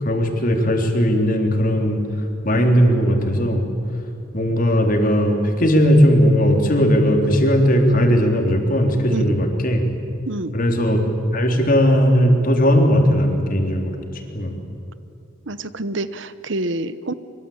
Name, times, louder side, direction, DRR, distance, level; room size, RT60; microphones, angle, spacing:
voice 1, 0.0-2.0 2.4-3.6 4.3-9.8 10.5-11.0 11.3-13.9 14.3-14.5, equal, 45° left, 3 dB, 3.7 m, -17 dB
voice 2, 10.3-10.6 15.5-17.1, right 2 dB, 65° right, 14 dB, 1.1 m, -27 dB
24.5 x 24.0 x 8.8 m, 2.7 s
head